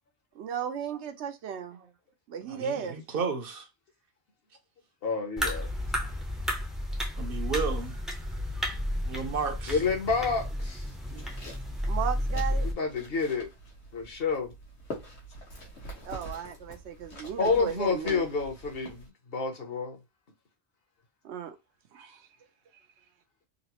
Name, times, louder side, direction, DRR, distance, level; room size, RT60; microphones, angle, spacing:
voice 1, 0.3-1.8 2.3-3.0 11.9-12.7 16.0-18.2 21.2-21.6 21.9-22.2, right 8 dB, 85° right, 1.0 m, -35 dB
voice 2, 2.5-3.7 7.2-7.9 9.0-9.8 11.1-11.3, right 5 dB, 60° right, 0.8 m, -33 dB
voice 3, 5.0-5.7 9.7-11.0 12.6-13.5 13.9-14.5 17.4-20.0, left 4 dB, 60° left, 1.1 m, -29 dB
sound 1, 5.4-12.7, equal, ahead, 0.4 m, -32 dB
sound 2, 11.1-19.1, equal, 85° left, 1.4 m, -45 dB
3.9 x 2.0 x 2.8 m
omnidirectional pair, 1.1 m